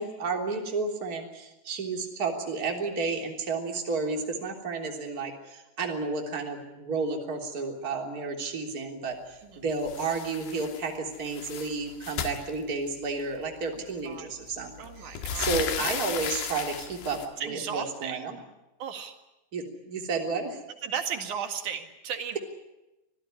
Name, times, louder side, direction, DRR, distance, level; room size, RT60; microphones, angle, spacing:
voice 1, 0.0-18.4 19.5-20.6, right 4 dB, 20° right, 1 dB, 3.1 m, -32 dB
sound 1, 9.8-10.9 11.1-13.1 14.1-14.2 14.5-17.3, left 8 dB, 75° left, 4.0 m, -35 dB
voice 2, 14.8-15.5 17.4-18.2 18.8-19.1 20.8-22.4, right 7 dB, 50° right, 6 dB, 2.9 m, -35 dB
25.5 x 17.0 x 9.8 m, 0.99 s
omnidirectional pair, 5.2 m